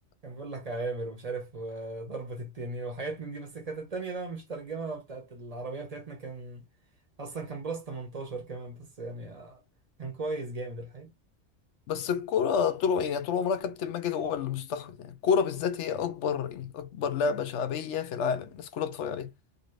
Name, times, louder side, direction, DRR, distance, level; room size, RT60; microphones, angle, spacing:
voice 1, 0.2-6.6 7.2-9.6 10.0-11.1, right 3 dB, 35° right, 0.7 m, -37 dB
voice 2, 11.9-19.3, left 7 dB, 75° left, 0.9 m, -29 dB
2.7 x 2.6 x 3.1 m
omnidirectional pair, 1.2 m